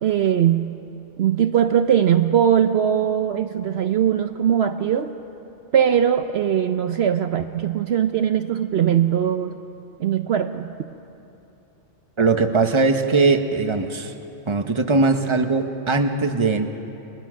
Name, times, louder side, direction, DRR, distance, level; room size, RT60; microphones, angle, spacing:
voice 1, 0.0-0.7 1.2-5.1 5.7-9.6 10.0-10.7, right 9 dB, 65° right, 8 dB, 0.9 m, -20 dB
voice 2, 12.2-14.1 14.5-16.7, right 3 dB, 25° right, 6 dB, 1.1 m, -20 dB
30.0 x 21.0 x 6.3 m, 2.9 s
omnidirectional pair, 1.2 m